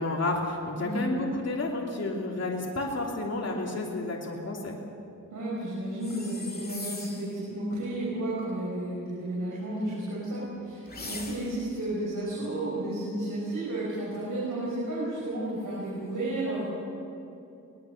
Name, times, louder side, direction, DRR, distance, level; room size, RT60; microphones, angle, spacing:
voice 1, 0.0-4.7, left 2 dB, 55° left, -2 dB, 3.1 m, -31 dB
voice 2, 0.7-1.1 5.3-16.7, right 1 dB, 80° right, -7 dB, 6.1 m, -32 dB
sound 1, 6.0-7.4 10.9-11.7, left 2 dB, 30° left, 2.6 m, -40 dB
23.0 x 19.5 x 6.6 m, 2.7 s
wide cardioid pair, 95°, 31 cm